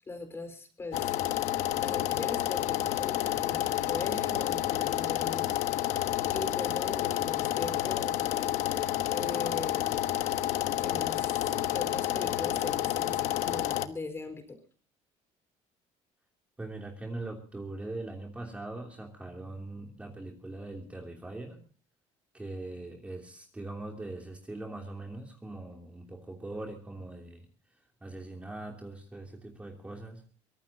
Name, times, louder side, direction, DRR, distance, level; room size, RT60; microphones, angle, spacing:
voice 1, 0.1-1.2 1.8-5.6 6.3-8.7 9.1-10.5 10.8-14.6, left 3 dB, 20° left, 8 dB, 4.4 m, -40 dB
sound 1, 0.9-13.9, left 13 dB, 75° left, 1.2 m, -30 dB
voice 2, 16.6-21.6 22.3-27.4 28.0-30.2, right 2 dB, 10° right, 1 dB, 3.0 m, -41 dB
23.5 x 18.5 x 2.8 m, 0.41 s
cardioid pair, 135°, 12 cm